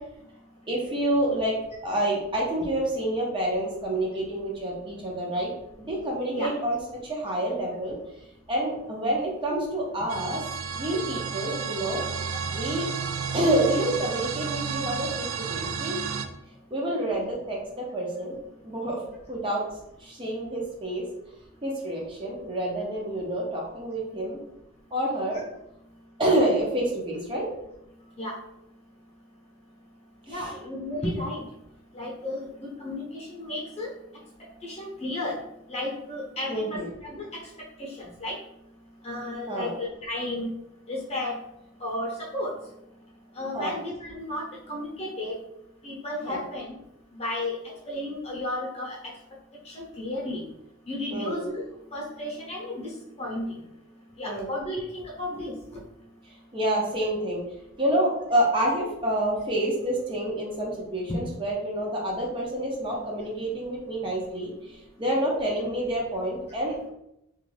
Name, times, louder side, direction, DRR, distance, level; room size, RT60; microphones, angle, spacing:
voice 1, 0.7-1.5 1.8-5.5 5.8-6.8 7.0-8.0 8.5-10.4 10.7-12.0 12.5-12.9 13.3-16.0 16.7-18.4 18.6-19.0 19.3-19.6 20.0-21.0 21.6-24.4 24.9-25.4 26.2-27.5 30.3-30.5 36.5-36.9 39.5-39.7 43.5-43.7 46.2-46.4 51.1-51.4 54.2-54.5 56.5-57.4 57.8-66.7, right 1 dB, 25° right, -3 dB, 0.6 m, -28 dB
sound 1, 10.1-16.3, right 6 dB, 75° right, 0.3 m, -32 dB
voice 2, 30.3-31.4 31.9-32.5 32.8-33.9 34.6-35.4 35.7-37.2 37.8-38.4 39.0-40.5 40.9-41.3 41.8-42.5 43.4-45.3 45.8-46.7 47.1-47.6 47.9-49.0 49.7-50.4 50.9-51.6 51.9-52.9 53.2-53.6 54.2-55.5, left 1 dB, 30° left, -3 dB, 0.8 m, -33 dB
2.5 x 2.3 x 3.2 m, 0.84 s
head